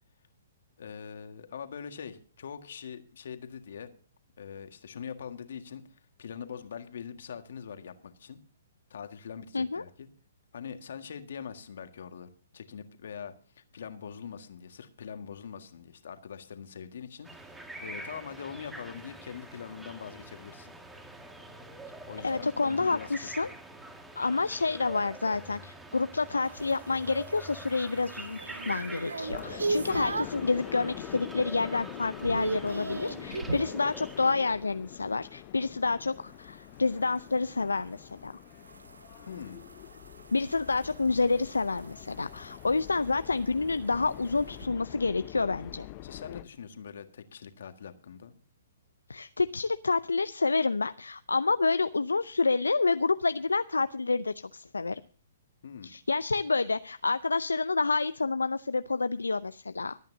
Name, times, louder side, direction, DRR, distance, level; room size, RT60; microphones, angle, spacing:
voice 1, 0.8-3.9 4.4-5.8 6.2-8.4 8.9-10.1 10.5-20.7 22.1-23.5 39.3-39.6 46.0-48.3 55.6-55.9, left 7 dB, 65° left, 8 dB, 1.7 m, -43 dB
sound 1, 17.2-34.3, right 1 dB, 5° right, 1.8 m, -45 dB
voice 2, 22.2-23.5 24.2-38.3 40.3-45.9 49.1-55.0 55.8-60.0, left 3 dB, 85° left, 13 dB, 0.5 m, -28 dB
sound 2, 26.4-30.5 31.0-31.4 31.7-33.8 36.3-44.7, right 3 dB, 85° right, 1.0 m, -39 dB
sound 3, 29.3-46.4, left 17 dB, 40° left, 0.7 m, -45 dB
24.5 x 9.2 x 2.7 m, 0.43 s
figure-of-eight pair, 125°, 0 cm